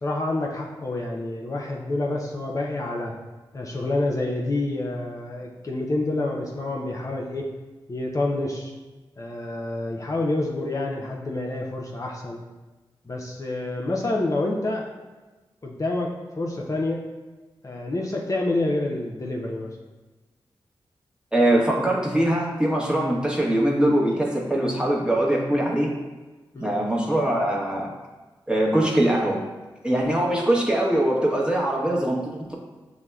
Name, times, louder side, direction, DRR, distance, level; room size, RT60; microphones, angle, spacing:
voice 1, 0.0-3.2 3.5-7.5 7.9-8.7 9.2-12.4 13.0-14.9 15.6-17.0 17.6-19.7 26.5-26.7, left 2 dB, 35° left, -2 dB, 0.5 m, -28 dB
voice 2, 21.3-25.9 26.6-27.9 28.5-29.4 29.8-32.6, right 1 dB, 10° right, -2 dB, 0.9 m, -22 dB
6.0 x 2.0 x 2.3 m, 1.2 s
cardioid pair, 40°, 9 cm